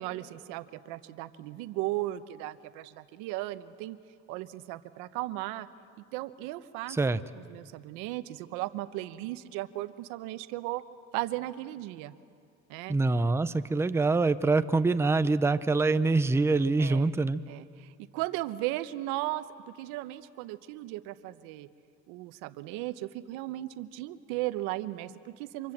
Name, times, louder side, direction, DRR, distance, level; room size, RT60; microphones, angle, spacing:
voice 1, 0.0-4.0 4.3-5.7 6.1-10.8 11.1-12.1 12.7-12.9 16.8-17.1 17.5-19.4 19.8-21.7 22.1-25.7, right 16 dB, 85° right, 13 dB, 0.9 m, -36 dB
voice 2, 6.9-7.2 12.9-17.4, right 3 dB, 10° right, 12 dB, 0.6 m, -25 dB
26.0 x 24.0 x 7.4 m, 2.3 s
cardioid pair, 105°, 30 cm